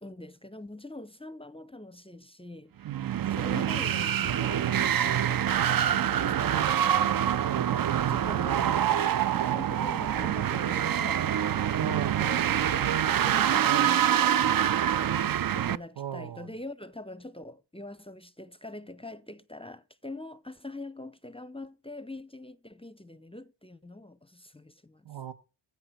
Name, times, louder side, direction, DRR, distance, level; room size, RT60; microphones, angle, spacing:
voice 1, 0.0-2.7 3.3-15.0 15.5-25.1, left 2 dB, 15° left, 0.6 m, -44 dB
voice 2, 2.8-3.3 7.5-7.8 11.8-12.4 13.7-14.0 16.0-16.5 25.0-25.3, right 10 dB, 70° right, 1.4 m, -37 dB
sound 1, 2.9-15.8, right 10 dB, 50° right, 0.6 m, -26 dB
15.5 x 5.8 x 5.8 m
cardioid pair, 80°, 44 cm